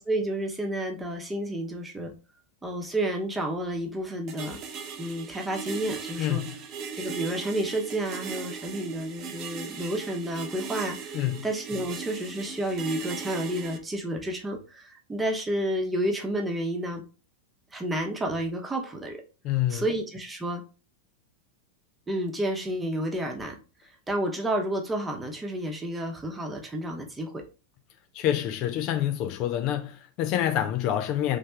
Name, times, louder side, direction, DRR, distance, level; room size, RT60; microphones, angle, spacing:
voice 1, 0.0-2.1 2.6-4.6 5.0-6.4 6.9-17.0 17.7-19.2 19.7-20.6 22.1-23.6 24.1-27.4, right 1 dB, 10° right, 1.0 m, -30 dB
sound 1, 4.3-13.8, right 6 dB, 35° right, 0.8 m, -38 dB
voice 2, 6.2-6.5 11.1-11.5 19.4-19.8 28.1-31.4, left 11 dB, 40° left, 0.5 m, -27 dB
3.4 x 3.3 x 4.4 m
figure-of-eight pair, 90°, 0 cm